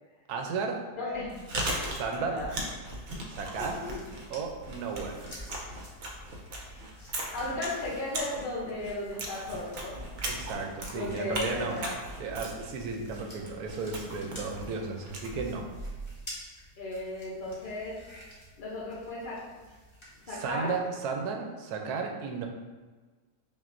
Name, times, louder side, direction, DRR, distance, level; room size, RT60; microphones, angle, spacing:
voice 1, 0.3-0.8 1.9-2.4 3.3-3.8 4.3-5.2 10.2-11.8 12.2-15.7 20.3-22.5, right 4 dB, 75° right, 3 dB, 1.1 m, -34 dB
voice 2, 0.9-1.4 2.1-2.6 3.6-4.0 6.7-6.8 7.3-10.0 10.9-12.0 16.8-18.0 18.6-19.4 20.3-20.7, left 2 dB, 60° left, -6 dB, 0.5 m, -35 dB
Chewing mastication, 1.1-16.2, right 1 dB, 60° right, 0.8 m, -38 dB
sound 1, 3.7-20.8, equal, 25° left, 0.7 m, -51 dB
5.5 x 2.5 x 2.5 m, 1.3 s
omnidirectional pair, 1.7 m